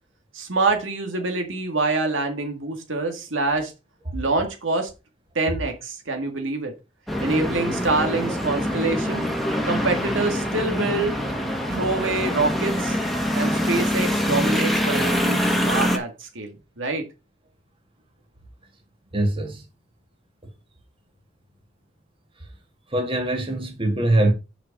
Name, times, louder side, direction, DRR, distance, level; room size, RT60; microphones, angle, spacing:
voice 1, 0.3-3.7 4.1-4.9 5.4-6.7 7.2-9.3 9.7-11.2 11.7-13.0 13.3-17.0, right 3 dB, 80° right, 1.9 m, -25 dB
sound 1, 7.1-16.0, equal, ahead, 1.5 m, -24 dB
voice 2, 19.1-19.6 22.9-24.3, right 1 dB, 30° right, 2.0 m, -22 dB
7.6 x 5.1 x 5.4 m
head